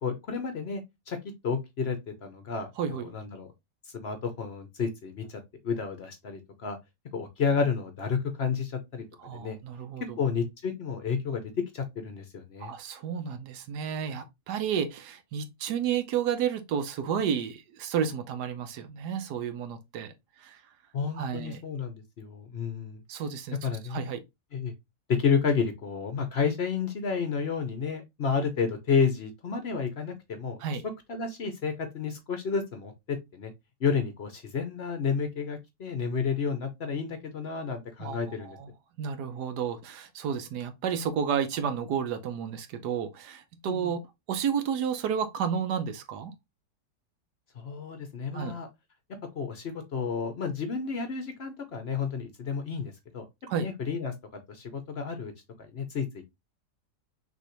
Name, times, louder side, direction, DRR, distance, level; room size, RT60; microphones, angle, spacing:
voice 1, 0.0-0.8 1.1-1.2 1.4-3.5 4.0-6.8 7.1-9.0 9.3-9.6 10.2-11.4 11.7-12.7 20.9-23.0 23.6-24.0 24.5-24.7 25.1-30.6 31.1-33.5 33.8-38.6 43.6-43.9 47.6-48.7 49.3-53.2 53.5-55.3 55.6-56.2, left 5 dB, 55° left, 0.7 m, -31 dB
voice 2, 2.8-3.1 9.2-10.2 12.6-20.1 20.4-20.6 21.1-21.6 23.1-24.2 30.6-30.8 38.0-38.7 39.0-44.0 44.3-46.3 48.3-48.5 53.5-53.7, right 7 dB, 75° right, 1.3 m, -31 dB
6.1 x 2.7 x 2.9 m
omnidirectional pair, 1.8 m